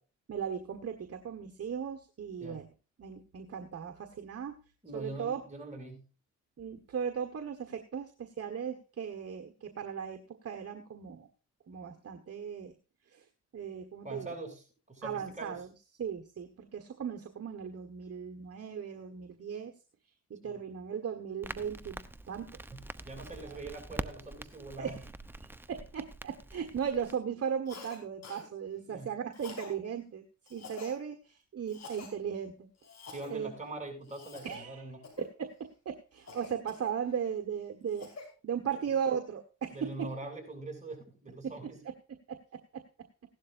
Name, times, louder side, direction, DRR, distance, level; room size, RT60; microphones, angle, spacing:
voice 1, 0.3-2.7 3.0-4.5 4.9-5.4 6.6-11.3 11.7-12.7 13.1-13.2 13.5-14.4 15.0-15.7 16.0-19.7 20.3-22.0 22.3-22.5 23.4-23.6 24.8-25.0 25.7-30.2 30.5-32.7 33.3-33.5 34.4-34.8 35.2-35.5 35.8-38.1 38.4-40.1 41.4-41.5 41.8-41.9 42.3-42.4 42.7-42.8, right 7 dB, 50° right, 5 dB, 1.4 m, -37 dB
voice 2, 4.8-6.0 14.0-15.6 20.4-20.6 22.7-25.0 28.9-29.1 33.1-35.0 39.7-41.8, right 2 dB, 20° right, 1 dB, 7.1 m, -43 dB
Crackle, 21.4-27.1, right 1 dB, 5° right, 0.8 m, -45 dB
Cough, 27.7-28.0 28.2-28.5 29.3-29.7 30.5-31.0 31.7-32.1 32.8-33.3 34.0-34.6 35.0-35.3 36.3-37.2 37.7-38.3, left 4 dB, 55° left, 5.2 m, -47 dB
16.5 x 12.0 x 2.6 m, 0.34 s
cardioid pair, 75°, 32 cm